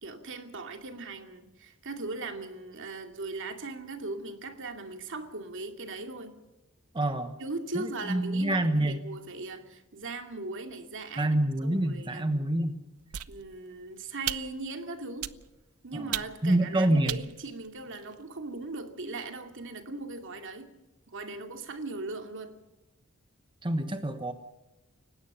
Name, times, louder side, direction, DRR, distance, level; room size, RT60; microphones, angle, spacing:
voice 1, 0.0-6.3 7.4-12.3 13.3-15.3 15.8-20.7 21.1-22.5, right 3 dB, 60° right, 6 dB, 2.5 m, -39 dB
voice 2, 6.9-7.3 7.7-9.0 11.2-12.8 15.9-16.1 16.4-17.2 23.6-24.3, right 1 dB, 20° right, 7 dB, 1.2 m, -27 dB
sound 1, 13.1-13.7 14.3-14.7 15.2-15.7 16.1-16.6 17.1-18.2, right 12 dB, 85° right, 0.8 m, -37 dB
29.5 x 17.0 x 5.7 m, 1.0 s
head